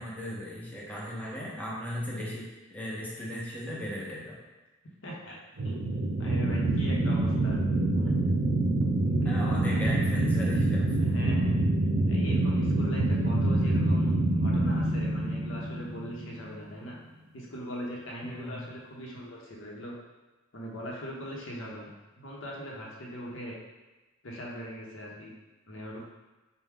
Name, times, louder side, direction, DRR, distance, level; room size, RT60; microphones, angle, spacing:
voice 1, 0.0-4.4 9.2-11.0 18.2-18.7, equal, 10° left, -5 dB, 0.7 m, -37 dB
voice 2, 5.0-5.4 5.6-5.8 6.2-7.6 7.9-8.1 9.0-9.9 11.0-11.6 12.1-17.0 17.3-19.9 20.5-23.6 24.2-25.3 25.7-26.0, equal, 70° left, -3 dB, 0.9 m, -40 dB
sound 1, 5.6-16.5, right 2 dB, 70° right, 0.5 m, -26 dB
4.5 x 2.2 x 3.6 m, 1.1 s
head